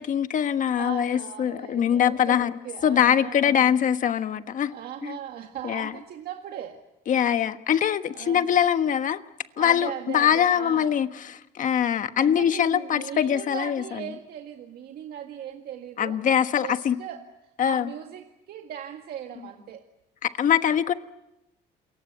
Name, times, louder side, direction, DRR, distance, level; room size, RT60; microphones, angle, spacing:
voice 1, 0.0-2.5 2.8-4.7 5.0-5.2 5.6-5.9 7.1-9.2 9.6-14.1 16.0-17.0 17.6-17.9 20.2-20.9, left 9 dB, 50° left, 10 dB, 1.4 m, -23 dB
voice 2, 0.7-3.7 4.7-6.8 8.1-8.5 9.6-11.0 12.2-16.2 16.6-17.2 17.6-19.8, right 10 dB, 65° right, 4 dB, 1.9 m, -38 dB
28.0 x 23.0 x 8.2 m, 0.93 s
cardioid pair, 110°, 17 cm